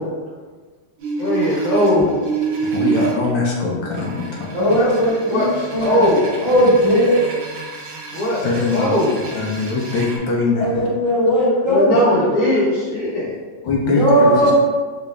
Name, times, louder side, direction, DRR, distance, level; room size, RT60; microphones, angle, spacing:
sound 1, 1.0-3.1 3.9-10.2, right 5 dB, 85° right, 1.4 m, -28 dB
voice 1, 1.2-2.1 5.2-6.3 8.1-9.2 11.6-13.3, left 1 dB, 40° left, -9 dB, 1.4 m, -19 dB
voice 2, 2.6-4.5 8.4-8.9 9.3-10.7 13.6-14.0 14.3-14.5, left 4 dB, 75° left, -2 dB, 1.2 m, -21 dB
voice 3, 4.5-6.1 6.4-7.1 10.6-11.9 13.8-14.5, equal, 45° right, -11 dB, 0.3 m, -17 dB
3.9 x 2.3 x 3.2 m, 1.4 s
omnidirectional pair, 2.1 m